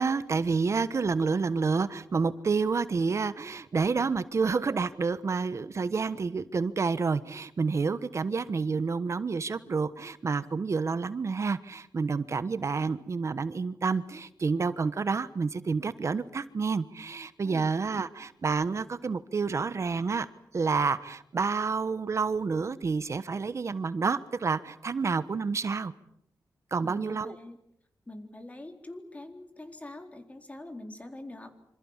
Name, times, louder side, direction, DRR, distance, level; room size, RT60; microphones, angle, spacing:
voice 1, 0.0-20.3 20.5-25.9 26.7-27.4, right 4 dB, 45° right, 14 dB, 1.2 m, -29 dB
voice 2, 26.8-27.6 28.1-31.5, left 1 dB, 20° left, 6 dB, 3.9 m, -44 dB
27.0 x 26.5 x 7.4 m, 0.74 s
wide cardioid pair, 120°, 7 cm